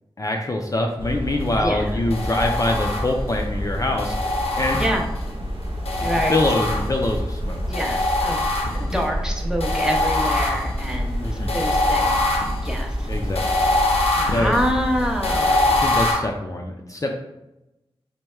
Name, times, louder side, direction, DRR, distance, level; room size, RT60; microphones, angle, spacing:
voice 1, 0.2-4.2 4.6-4.8 6.3-7.6 8.8-9.0 11.2-11.5 13.1-13.7 14.2-14.5 15.7-17.1, left 2 dB, 35° left, 2 dB, 0.4 m, -24 dB
sound 1, 1.0-16.1, equal, 60° right, 0.6 m, -28 dB
voice 2, 1.6-2.0 4.7-5.0 6.0-6.4 7.7-8.4 8.9-13.1 14.2-15.8, equal, 5° right, 1 dB, 0.6 m, -27 dB
sound 2, 2.1-3.4 4.0-5.3 5.8-7.2 7.7-9.0 9.6-16.2, left 2 dB, 85° left, 0.6 m, -24 dB
3.4 x 2.2 x 4.2 m, 0.92 s
wide cardioid pair, 75°, 10 cm